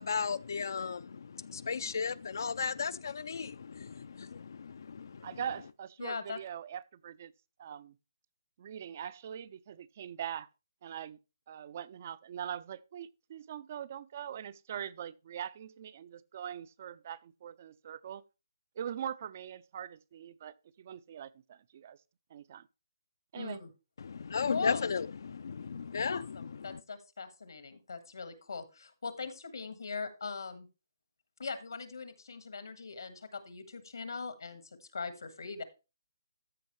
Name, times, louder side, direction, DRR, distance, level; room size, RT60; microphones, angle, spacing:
voice 1, 0.0-5.3 24.0-26.8, left 5 dB, 60° left, 0.3 m, -35 dB
voice 2, 5.2-7.3 7.6-7.9 8.6-10.5 10.8-11.2 11.5-18.2 18.8-22.0 22.3-22.6 23.3-23.6, right 9 dB, 35° right, 0.3 m, -42 dB
voice 3, 6.0-6.4 23.3-23.7 24.4-24.8 26.0-30.7 31.4-34.6 34.9-35.6, left 4 dB, 80° left, 1.5 m, -40 dB
13.5 x 5.2 x 3.1 m
hypercardioid pair, 170°, 2 cm